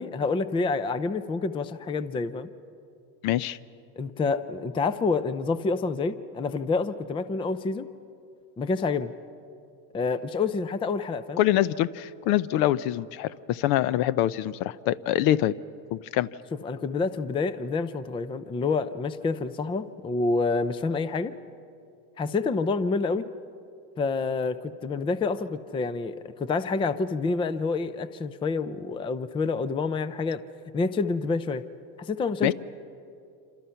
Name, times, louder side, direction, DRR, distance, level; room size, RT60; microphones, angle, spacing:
voice 1, 0.0-2.5 4.0-7.9 8.6-9.1 9.9-11.4 16.6-21.3 22.2-23.3 24.0-30.4 30.7-31.6 32.0-32.5, left 4 dB, 10° left, 14 dB, 0.5 m, -28 dB
voice 2, 3.2-3.6 11.4-15.5 15.9-16.3 32.4-32.5, left 13 dB, 50° left, 17 dB, 0.7 m, -25 dB
27.0 x 26.5 x 5.7 m, 2.5 s
supercardioid pair, 120°, 46 cm